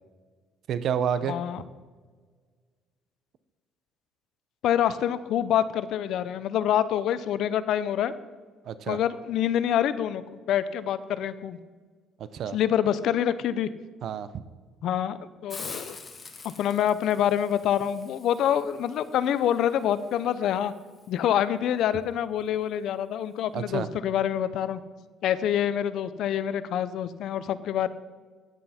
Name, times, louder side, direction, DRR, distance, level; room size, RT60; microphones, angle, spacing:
voice 1, 0.7-1.4 8.6-9.0 12.2-12.6 14.0-14.4 23.5-23.9, right 8 dB, 55° right, 14 dB, 0.7 m, -29 dB
voice 2, 1.3-1.6 4.6-8.1 8.9-10.2 10.5-11.6 12.5-13.7 14.8-16.0 16.6-20.7 21.1-24.8 25.2-27.9, left 10 dB, 65° left, 15 dB, 0.6 m, -26 dB
Hiss, 15.5-21.1, left 4 dB, 25° left, 1.5 m, -46 dB
13.5 x 9.8 x 4.3 m, 1.5 s
cardioid pair, 125°, 0 cm